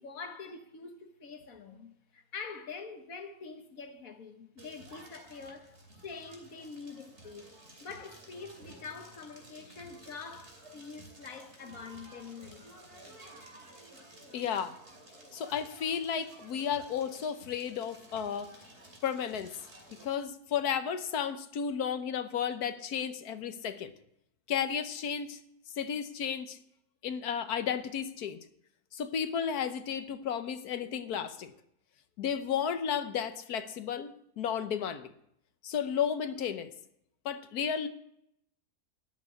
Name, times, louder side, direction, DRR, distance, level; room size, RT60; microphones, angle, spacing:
voice 1, 0.0-12.7, left 5 dB, 65° left, 1.7 m, -45 dB
Crackle, 4.6-20.1, right 1 dB, 45° right, 3.1 m, -53 dB
voice 2, 14.3-14.8 15.3-18.5 19.0-19.5 20.0-23.9 24.5-25.4 25.7-26.6 27.0-28.4 28.9-31.5 32.2-35.1 35.6-36.7 37.2-37.9, left 8 dB, 80° left, 1.4 m, -33 dB
13.0 x 6.3 x 9.8 m
omnidirectional pair, 1.6 m